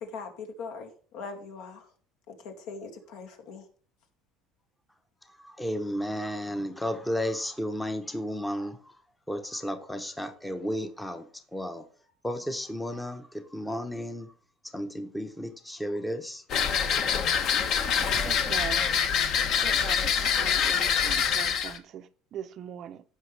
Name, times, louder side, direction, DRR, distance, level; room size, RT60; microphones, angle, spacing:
voice 1, 0.0-1.8 2.3-3.6, left 4 dB, 70° left, 2.2 m, -41 dB
voice 2, 5.4-8.8 9.3-11.3 11.5-11.8 12.2-14.3 14.7-16.4, equal, 5° left, 0.8 m, -33 dB
sound 1, 16.5-21.8, left 7 dB, 45° left, 1.1 m, -25 dB
voice 3, 18.2-19.0 19.6-23.0, right 10 dB, 40° right, 0.5 m, -41 dB
15.5 x 5.8 x 3.3 m
cardioid pair, 165°, 0 cm